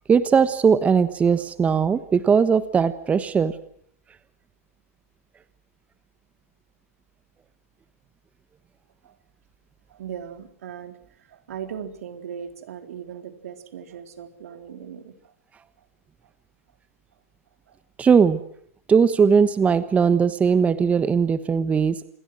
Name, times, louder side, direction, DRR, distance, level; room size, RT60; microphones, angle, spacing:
voice 1, 0.1-3.5 18.0-18.4 18.9-22.0, right 6 dB, 15° right, 13 dB, 1.2 m, -19 dB
voice 2, 9.9-15.3 15.8-15.9 17.7-17.8, right 8 dB, 70° right, 7 dB, 3.9 m, -38 dB
28.0 x 21.5 x 6.4 m, 0.66 s
hypercardioid pair, 115°, 8 cm